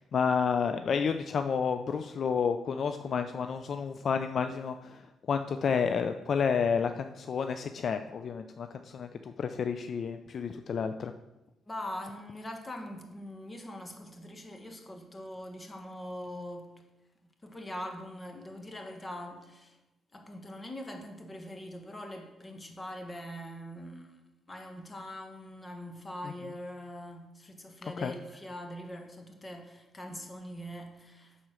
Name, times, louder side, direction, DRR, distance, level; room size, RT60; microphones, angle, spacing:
voice 1, 0.0-5.0 5.3-8.7 8.9-11.1 28.0-28.1, left 6 dB, 50° left, 0.4 m, -30 dB
voice 2, 11.7-16.7 17.4-19.8 20.1-24.2 24.5-31.4, left 1 dB, 20° left, 1.5 m, -42 dB
9.6 x 4.3 x 6.3 m
cardioid pair, 90°, 0 cm